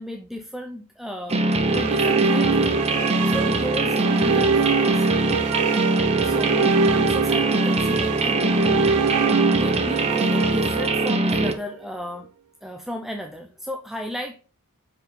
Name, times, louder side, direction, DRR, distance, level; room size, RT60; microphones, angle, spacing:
voice 1, 0.0-1.4 1.7-5.1 6.2-12.3 12.6-14.4, equal, ahead, 4 dB, 0.5 m, -34 dB
sound 1, 1.3-11.5, right 2 dB, 30° right, 0.8 m, -22 dB
sound 2, 1.4-11.6, right 5 dB, 75° right, 0.4 m, -24 dB
5.8 x 4.9 x 5.2 m, 0.37 s
head